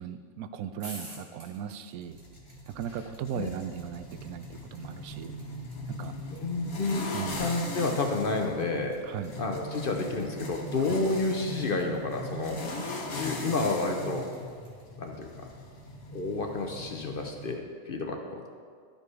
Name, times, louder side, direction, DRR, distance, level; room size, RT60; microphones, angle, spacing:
voice 1, 0.0-2.2 2.7-5.4 5.9-6.1 7.1-7.4 9.1-9.3 10.9-11.0, right 8 dB, 85° right, 11 dB, 1.0 m, -37 dB
sound 1, 0.7-14.8, right 1 dB, 25° right, 2.1 m, -51 dB
sound 2, 2.1-17.6, left 1 dB, 85° left, 1.7 m, -39 dB
voice 2, 6.3-7.1 7.4-9.0 9.4-12.6 13.1-14.3 15.0-15.3 16.1-18.5, left 3 dB, 50° left, 3 dB, 0.8 m, -30 dB
12.5 x 5.3 x 4.8 m, 2.1 s
omnidirectional pair, 1.5 m